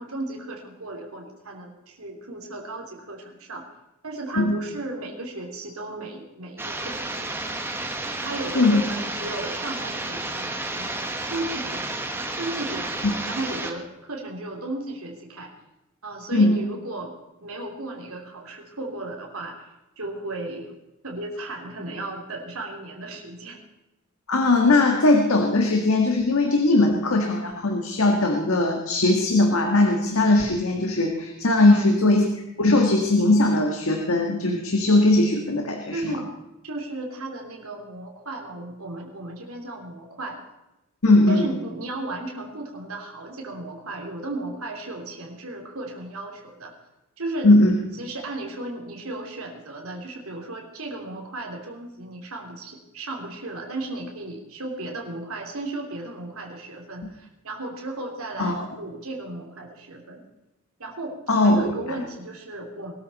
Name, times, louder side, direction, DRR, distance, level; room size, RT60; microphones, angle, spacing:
voice 1, 0.0-3.6 4.0-7.6 8.2-15.5 16.0-17.1 17.4-20.7 21.0-23.6 31.7-32.1 35.9-36.3 36.6-40.4 41.3-46.7 47.2-47.5 47.9-60.3 60.8-62.9, right 2 dB, 75° right, 1 dB, 3.1 m, -35 dB
sound 1, 6.6-13.7, right 2 dB, 10° right, 1.3 m, -31 dB
voice 2, 24.3-32.2 32.6-36.2 41.0-41.4 47.4-47.7 58.4-58.5 61.3-61.7, left 2 dB, 70° left, 2 dB, 1.7 m, -19 dB
21.0 x 13.0 x 4.2 m, 0.96 s
head